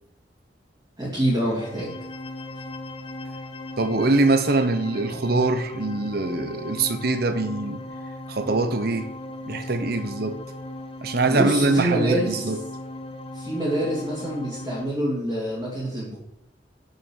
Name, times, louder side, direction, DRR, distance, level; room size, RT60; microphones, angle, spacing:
voice 1, 1.0-1.9 11.3-12.5 13.3-16.2, right 1 dB, 20° right, 2.6 m, -26 dB
sound 1, 1.3-14.8, left 1 dB, 35° left, 0.7 m, -37 dB
voice 2, 3.8-7.8 8.3-9.1 9.5-10.4 11.0-12.6, right 3 dB, 60° right, 0.9 m, -23 dB
7.0 x 6.6 x 6.3 m
head